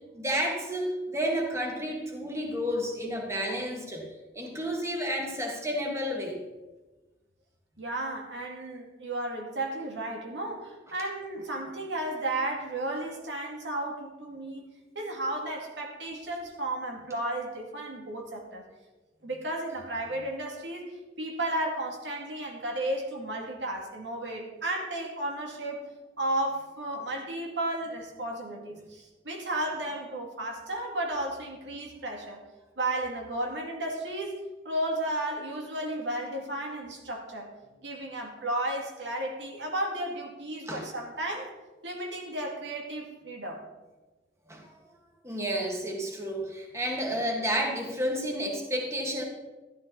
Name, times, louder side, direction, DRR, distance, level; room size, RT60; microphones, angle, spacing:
voice 1, 0.1-4.0 4.3-6.4 40.7-40.9 44.5-44.6 45.2-49.2, equal, 15° right, 0 dB, 1.9 m, -31 dB
voice 2, 7.8-14.6 14.9-18.7 19.2-20.9 21.2-25.9 26.2-32.4 32.8-34.4 34.6-37.5 37.8-41.5 41.8-43.6, right 1 dB, 80° right, 1 dB, 2.5 m, -33 dB
14.0 x 11.5 x 4.1 m, 1.2 s
head